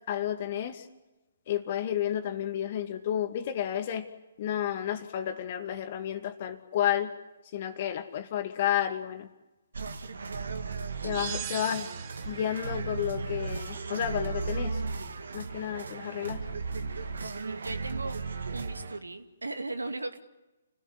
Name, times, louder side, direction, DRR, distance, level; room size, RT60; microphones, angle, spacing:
voice 1, 0.1-0.9 1.5-4.1 4.4-7.1 7.5-9.3 11.0-11.9 12.2-14.8 15.3-16.4, left 10 dB, 45° left, 9 dB, 2.3 m, -31 dB
sound 1, 9.7-19.0, right 4 dB, 70° right, 2.2 m, -35 dB
voice 2, 11.0-11.4 16.9-18.2 18.5-20.2, right 2 dB, 90° right, 9 dB, 2.3 m, -38 dB
sound 2, 11.1-12.5, right 11 dB, 35° right, 1.9 m, -39 dB
29.0 x 16.5 x 9.8 m, 1.1 s
figure-of-eight pair, 135°, 0 cm